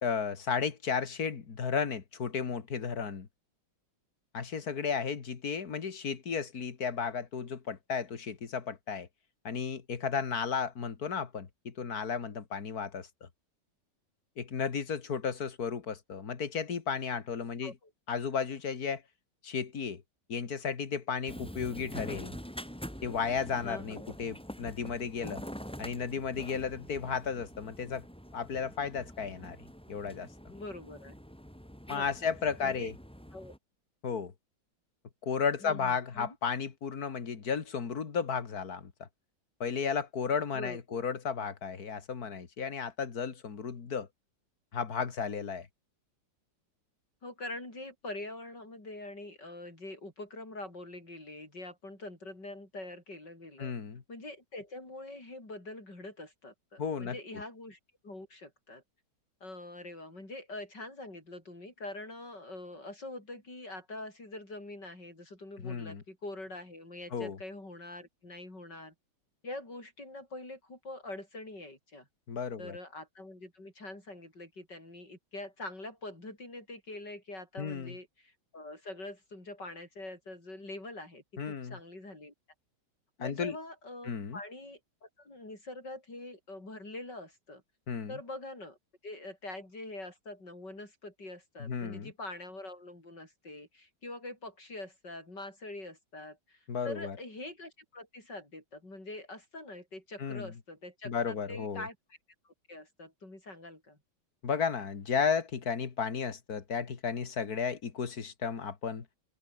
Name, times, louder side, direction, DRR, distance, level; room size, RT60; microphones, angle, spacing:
voice 1, 0.0-3.3 4.3-9.1 9.4-13.3 14.4-17.7 18.1-19.0 19.4-20.0 20.3-22.4 23.0-25.4 25.8-28.0 28.3-29.6 29.9-30.3 31.9-32.9 34.0-34.3 35.2-39.1 39.6-44.1 44.7-45.7 53.6-54.0 56.8-57.2 65.6-66.0 67.1-67.4 72.3-72.8 77.6-78.0 81.4-81.8 83.2-83.6 84.1-84.4 87.9-88.2 91.6-92.1 96.7-97.2 100.2-100.5 101.0-101.9 104.4-109.1, left 6 dB, 60° left, 2.4 m, -34 dB
sound 1, 21.3-33.6, equal, 5° left, 7.1 m, -45 dB
voice 2, 23.6-24.0 30.5-31.2 31.9-32.3 32.6-32.9 33.3-33.5 35.6-36.4 40.5-41.0 47.2-53.7 54.1-57.8 58.0-58.8 59.4-68.9 69.4-72.1 72.6-82.3 83.2-87.6 88.1-88.8 89.0-102.0 102.4-104.0, left 2 dB, 75° left, 8.7 m, -44 dB
open air
omnidirectional pair, 1.9 m